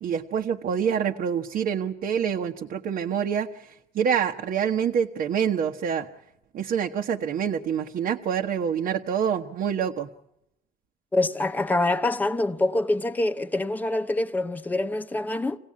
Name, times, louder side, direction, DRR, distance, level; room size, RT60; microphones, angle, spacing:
voice 1, 0.0-6.1 6.5-10.1, right 8 dB, 60° right, 1.2 m, -26 dB
voice 2, 11.1-15.6, left 2 dB, 10° left, 0.8 m, -25 dB
26.5 x 17.5 x 8.6 m
cardioid pair, 110°, 17 cm